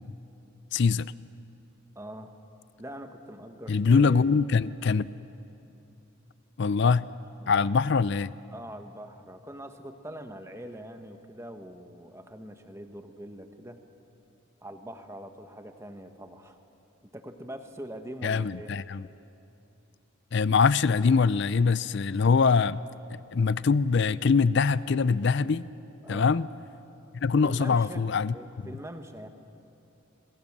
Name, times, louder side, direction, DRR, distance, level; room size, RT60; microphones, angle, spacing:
voice 1, 0.7-1.1 3.7-5.1 6.6-7.0 7.5-8.3 18.2-19.1 20.3-22.8 23.1-25.7 26.1-26.5 27.1-28.3, left 5 dB, 55° left, 18 dB, 0.4 m, -23 dB
voice 2, 1.9-2.4 2.8-4.2 6.8-7.0 7.4-7.7 8.5-13.8 14.6-16.6 17.0-18.7 26.0-26.4 27.4-28.0 28.3-29.3, right 1 dB, 15° right, 6 dB, 1.2 m, -43 dB
27.0 x 21.0 x 7.3 m, 2.8 s
head